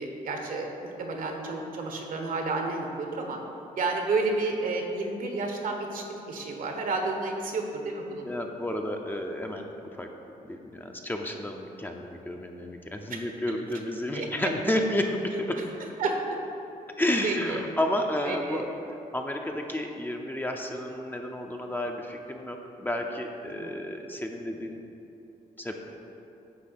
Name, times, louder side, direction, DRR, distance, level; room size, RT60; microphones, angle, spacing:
voice 1, 0.0-3.4 3.8-8.2 13.1-13.2 13.5-13.6 14.1-14.5 16.0-16.4 17.2-17.6 18.2-18.6 23.6-23.8, right 3 dB, 65° right, 2 dB, 1.1 m, -31 dB
voice 2, 8.2-10.1 10.4-15.6 17.0-18.7 19.1-24.8 25.6-25.7, left 1 dB, 15° left, 2 dB, 0.7 m, -31 dB
9.6 x 3.3 x 6.6 m, 2.8 s
cardioid pair, 90°, 15 cm